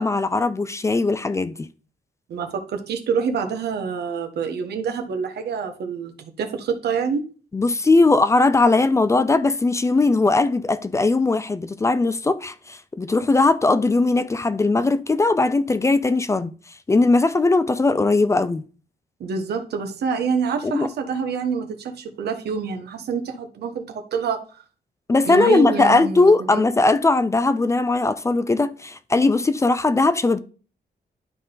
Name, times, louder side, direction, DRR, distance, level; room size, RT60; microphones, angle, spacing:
voice 1, 0.0-1.7 7.5-16.5 16.9-18.6 20.6-20.9 25.1-30.4, left 3 dB, 20° left, 0.4 m, -19 dB
voice 2, 2.3-7.3 19.2-24.4 25.2-26.6, right 6 dB, 90° right, 1.2 m, -26 dB
11.5 x 3.9 x 3.9 m
wide cardioid pair, 165°, 16 cm